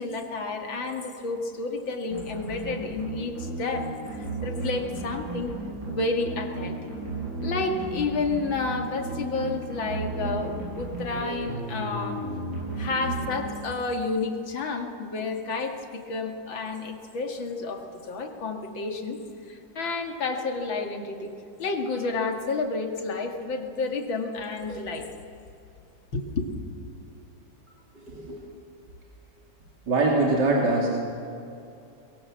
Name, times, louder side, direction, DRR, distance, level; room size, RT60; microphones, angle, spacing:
voice 1, 0.0-5.5 5.9-6.8 7.4-12.2 12.8-19.2 19.5-21.3 21.6-25.1 26.1-26.5, left 3 dB, 85° left, 4 dB, 2.8 m, -30 dB
sound 1, 2.1-14.0, right 2 dB, 80° right, 7.8 m, -34 dB
voice 2, 28.0-28.5 29.9-30.9, right 2 dB, 60° right, -2 dB, 3.4 m, -23 dB
23.5 x 22.0 x 7.4 m, 2.6 s
omnidirectional pair, 2.1 m